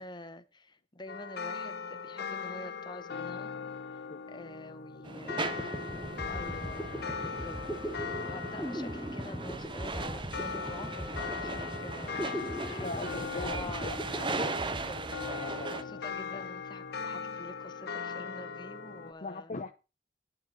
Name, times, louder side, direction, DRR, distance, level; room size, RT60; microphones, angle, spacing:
voice 1, 0.0-3.5 3.9-5.6 6.3-19.5, left 2 dB, 25° left, 1.1 m, -47 dB
sound 1, 1.1-19.1, left 5 dB, 60° left, 1.0 m, -40 dB
sound 2, 5.0-5.1 5.3-15.8, equal, ahead, 1.3 m, -40 dB
sound 3, 5.0-15.8, right 3 dB, 25° right, 0.8 m, -39 dB
voice 2, 5.4-5.9 12.8-14.0 14.4-14.5 15.3-15.9 19.2-19.7, left 3 dB, 40° left, 0.7 m, -40 dB
9.5 x 5.5 x 7.3 m
head